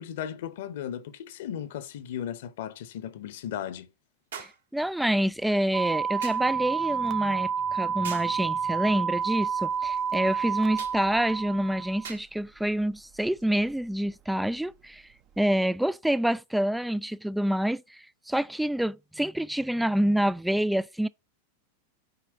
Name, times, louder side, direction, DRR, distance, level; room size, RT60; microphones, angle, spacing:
voice 1, 0.0-3.9, left 10 dB, 55° left, 1.0 m, -36 dB
sound 1, 0.5-0.6 4.3-4.7 6.2-6.5 8.0-8.4 10.8-11.0 12.0-12.3 13.4-13.5, right 6 dB, 65° right, 1.9 m, -41 dB
voice 2, 4.4-15.1 15.4-21.1, right 1 dB, ahead, 0.3 m, -27 dB
sound 2, 5.7-12.1, right 7 dB, 30° right, 0.6 m, -29 dB
6.9 x 4.9 x 4.9 m
figure-of-eight pair, 90°, 0 cm